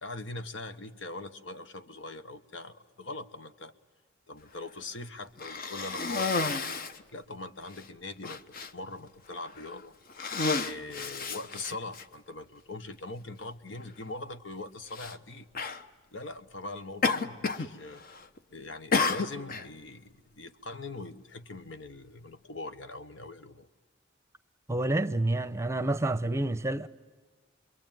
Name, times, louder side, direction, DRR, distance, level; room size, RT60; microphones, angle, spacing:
voice 1, 0.0-3.7 4.3-6.8 7.1-9.9 10.6-15.5 16.1-18.0 18.5-23.7, left 2 dB, 70° left, 1.2 m, -42 dB
Cough, 5.4-7.0 7.7-7.8 8.2-8.7 9.5-9.7 10.1-12.0 13.0-13.1 14.9-15.1 15.5-15.8 17.0-17.7 18.0-18.4 18.9-19.7, left 4 dB, 50° left, 1.0 m, -31 dB
voice 2, 24.7-26.9, right 2 dB, 15° right, 0.7 m, -28 dB
28.0 x 22.5 x 9.2 m
head